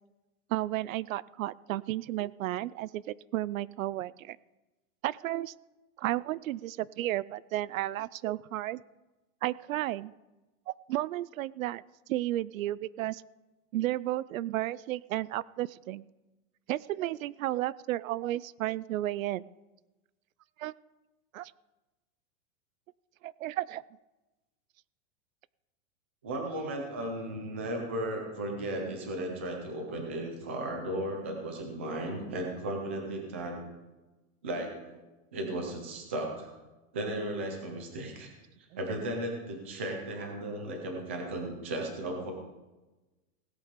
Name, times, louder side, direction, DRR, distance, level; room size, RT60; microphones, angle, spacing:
voice 1, 0.5-4.4 5.0-5.5 6.0-8.8 9.4-10.1 10.7-11.8 12.1-13.2 13.7-16.1 16.7-19.4 20.6-20.7 21.3-21.5 23.2-23.8, right 15 dB, 75° right, 22 dB, 0.5 m, -33 dB
voice 2, 26.2-33.6 34.4-35.0 35.3-36.5 36.9-38.3 38.6-42.3, right 1 dB, 10° right, 2 dB, 0.3 m, -35 dB
17.0 x 8.3 x 5.1 m, 1.1 s
supercardioid pair, 170°, 41 cm